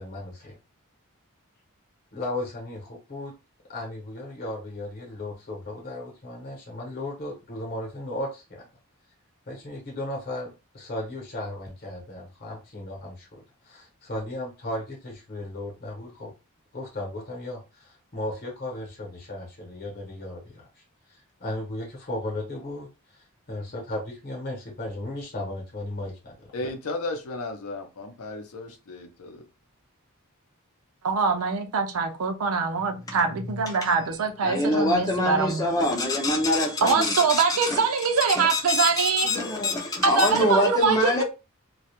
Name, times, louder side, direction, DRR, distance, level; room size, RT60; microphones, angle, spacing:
voice 1, 0.0-0.5 2.1-3.3 3.7-8.7 9.5-16.3 16.7-20.8 21.1-26.7, left 1 dB, 45° left, 0.8 m, -36 dB
voice 2, 26.5-29.4, left 2 dB, 75° left, 0.6 m, -34 dB
voice 3, 31.0-35.7 36.8-39.3 40.0-41.2, right 5 dB, 75° right, 0.5 m, -24 dB
voice 4, 34.4-37.8 38.4-41.2, left 1 dB, 15° left, 0.4 m, -24 dB
2.2 x 2.0 x 2.9 m
head